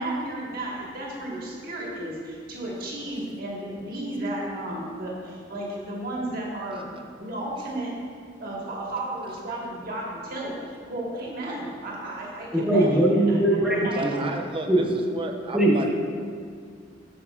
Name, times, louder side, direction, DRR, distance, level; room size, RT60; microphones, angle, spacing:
voice 1, 0.0-6.9 7.2-8.0 8.4-14.2, right 1 dB, 50° right, -3 dB, 1.4 m, -33 dB
voice 2, 12.7-14.3 14.7-14.9 15.5-15.9, right 1 dB, 5° right, -5 dB, 1.1 m, -21 dB
voice 3, 13.9-15.9, right 2 dB, 30° right, 4 dB, 0.5 m, -32 dB
12.0 x 5.2 x 2.3 m, 2.1 s
head